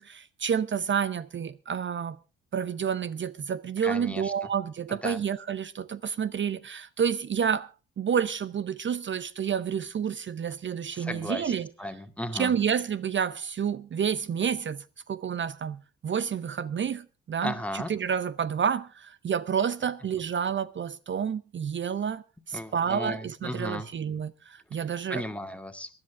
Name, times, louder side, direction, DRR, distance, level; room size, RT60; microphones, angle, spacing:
voice 1, 0.0-2.2 2.5-7.7 8.0-11.7 12.4-25.2, right 7 dB, 35° right, 0.7 m, -29 dB
voice 2, 3.8-4.3 4.9-5.2 10.9-11.5 11.8-12.5 17.4-17.9 22.5-23.9 25.1-25.9, left 1 dB, 5° left, 2.1 m, -35 dB
23.0 x 11.0 x 3.4 m
hypercardioid pair, 50°, 33 cm